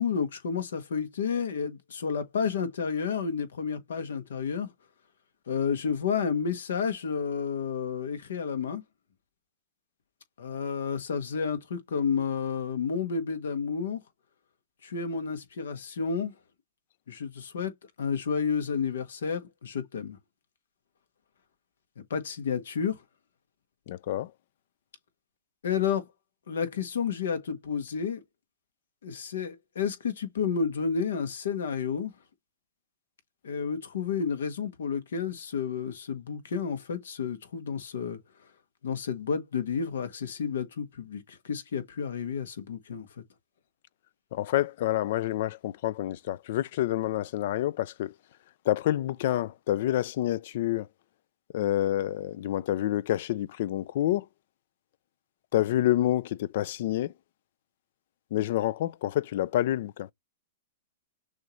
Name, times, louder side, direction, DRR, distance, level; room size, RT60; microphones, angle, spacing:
voice 1, 0.0-4.7 5.5-8.8 10.4-14.0 14.8-16.3 17.1-17.7 18.0-20.2 22.1-23.0 25.6-26.0 26.5-28.2 29.0-32.1 33.4-38.2 38.8-43.2, left 6 dB, 85° left, 1.3 m, -31 dB
voice 2, 23.9-24.3 44.3-48.1 48.7-50.9 51.5-54.2 55.5-57.1 58.3-60.1, left 13 dB, 60° left, 0.4 m, -28 dB
6.3 x 2.7 x 3.1 m
hypercardioid pair, 140°, 0 cm